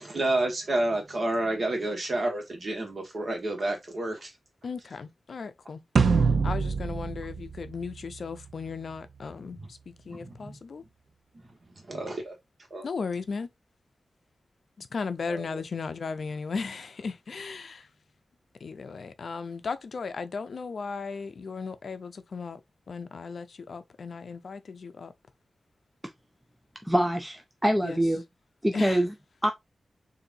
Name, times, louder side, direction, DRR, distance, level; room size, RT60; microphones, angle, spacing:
voice 1, 0.0-4.4 9.6-9.7 10.1-10.6 11.4-12.4 12.7-12.9 15.3-15.6, right 2 dB, 45° right, 1.5 m, -30 dB
voice 2, 4.6-5.8 6.4-10.8 12.8-13.5 14.8-17.9 18.6-22.6 22.9-25.1 27.8-28.0 28.7-29.0, left 5 dB, 60° left, 0.5 m, -36 dB
sound 1, 6.0-8.4, right 5 dB, 75° right, 0.5 m, -25 dB
voice 3, 26.8-28.2 28.6-29.1 29.4-29.5, right 1 dB, 5° right, 0.4 m, -25 dB
6.7 x 2.7 x 2.6 m
wide cardioid pair, 150°, 0 cm